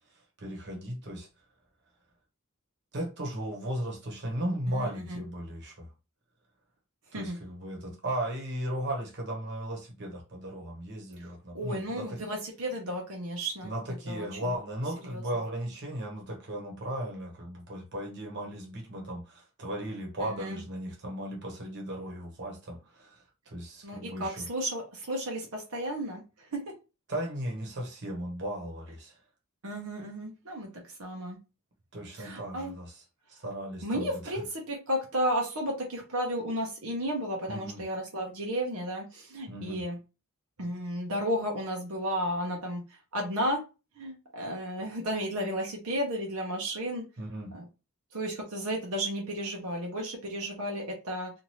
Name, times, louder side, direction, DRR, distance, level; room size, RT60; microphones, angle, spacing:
voice 1, 0.1-1.3 2.9-5.9 7.1-12.2 13.6-24.5 27.1-29.2 31.9-33.0 33.3-34.4 37.5-37.8 39.5-39.8 47.2-47.5, right 1 dB, 55° right, 1.1 m, -36 dB
voice 2, 4.7-5.2 7.1-7.4 11.5-13.7 14.1-14.2 15.1-15.2 20.3-20.6 23.8-26.2 26.5-26.6 29.6-30.7 31.0-31.4 32.2-32.7 33.8-40.0 40.6-42.8 43.1-43.6 44.0-47.0 47.5-47.6 48.1-51.3, equal, 85° right, 0.8 m, -33 dB
2.8 x 2.5 x 3.0 m
head